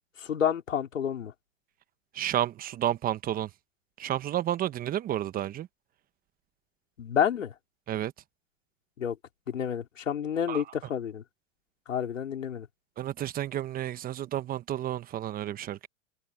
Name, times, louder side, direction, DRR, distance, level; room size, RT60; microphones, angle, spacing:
voice 1, 0.2-1.3 7.0-7.5 9.0-9.2 9.5-11.2 11.9-12.7, left 8 dB, 90° left, 4.4 m, -29 dB
voice 2, 2.1-3.5 4.0-5.7 7.9-8.1 10.5-10.6 13.0-15.9, right 12 dB, 25° right, 1.2 m, -31 dB
hypercardioid pair, 130°, 37 cm